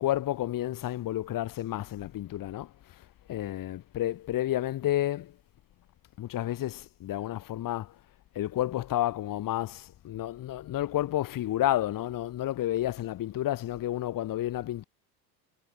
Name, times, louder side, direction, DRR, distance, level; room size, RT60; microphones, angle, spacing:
voice 1, 0.0-2.7 3.3-5.3 6.2-7.9 8.4-14.8, left 13 dB, 40° left, 1.8 m, -30 dB
hypercardioid pair, 70°, 49 cm